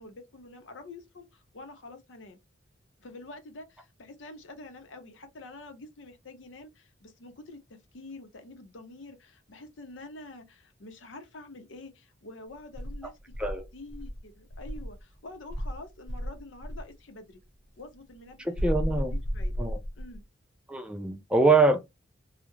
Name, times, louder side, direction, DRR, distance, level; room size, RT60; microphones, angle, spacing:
voice 1, 0.0-2.4 3.0-13.4 13.7-17.4 17.8-18.5 18.9-19.7 20.0-20.2, left 2 dB, 90° left, 0.7 m, -47 dB
Insect, 12.7-15.0 15.5-16.9 18.5-20.2, equal, 80° right, 0.8 m, -33 dB
voice 2, 18.4-19.1 19.6-19.8 20.7-22.0, right 3 dB, 5° right, 0.4 m, -24 dB
2.3 x 2.0 x 3.0 m
head